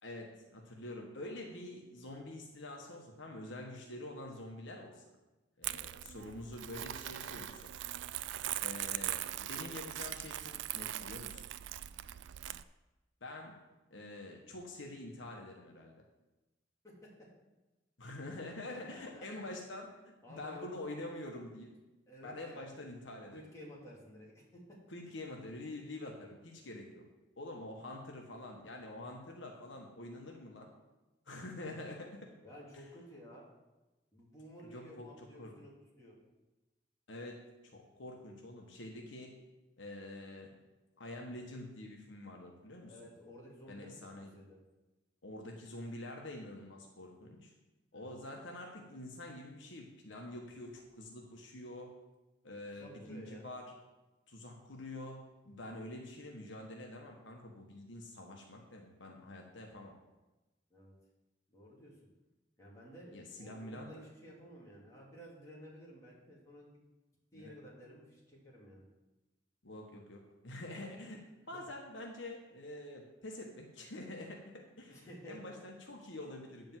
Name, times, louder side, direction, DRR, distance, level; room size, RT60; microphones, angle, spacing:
voice 1, 0.0-5.0 5.6-7.6 8.6-11.4 13.2-13.6 13.9-16.0 18.0-21.7 22.2-23.4 24.9-27.0 27.4-30.7 31.3-32.3 34.7-35.5 37.1-39.4 39.8-40.6 41.0-42.9 43.7-44.3 45.2-47.5 47.9-52.0 52.4-53.7 54.3-59.9 63.1-64.0 67.3-67.5 69.6-76.8, left 1 dB, 75° left, 1 dB, 1.3 m, -46 dB
Crumpling crinkling, 5.6-12.6, right 13 dB, 70° right, 0.3 m, -40 dB
voice 2, 16.8-17.3 18.7-19.5 20.2-20.9 22.1-22.7 23.3-24.8 31.6-31.8 32.4-33.5 34.1-36.2 42.8-44.6 47.9-48.2 52.7-53.5 60.7-60.9 61.5-62.0 62.6-66.8 67.3-68.8 74.9-75.4, equal, 15° left, -6 dB, 3.0 m, -53 dB
9.0 x 5.2 x 7.5 m, 1.1 s
head